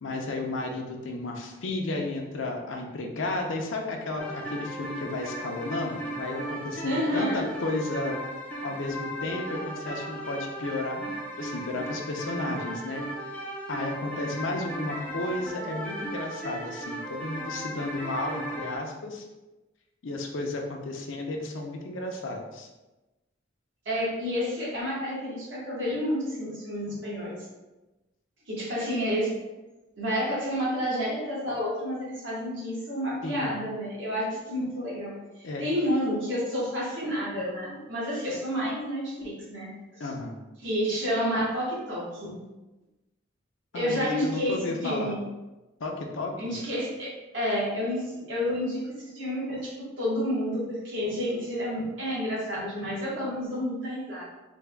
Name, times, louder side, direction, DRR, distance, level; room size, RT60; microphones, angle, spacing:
voice 1, 0.0-8.2 8.6-13.3 13.7-19.2 20.0-22.7 33.2-33.5 35.4-35.6 40.0-40.4 43.7-45.2 45.8-46.6, left 2 dB, 75° left, 2 dB, 0.5 m, -33 dB
sound 1, 4.2-18.8, right 1 dB, 5° left, 0.4 m, -36 dB
voice 2, 6.8-7.5 23.8-27.4 28.5-29.3 30.0-35.2 35.6-40.1 40.6-42.5 43.7-45.2 46.4-47.1 47.3-54.2, equal, 65° right, -6 dB, 1.2 m, -30 dB
3.4 x 2.2 x 3.3 m, 1.1 s
head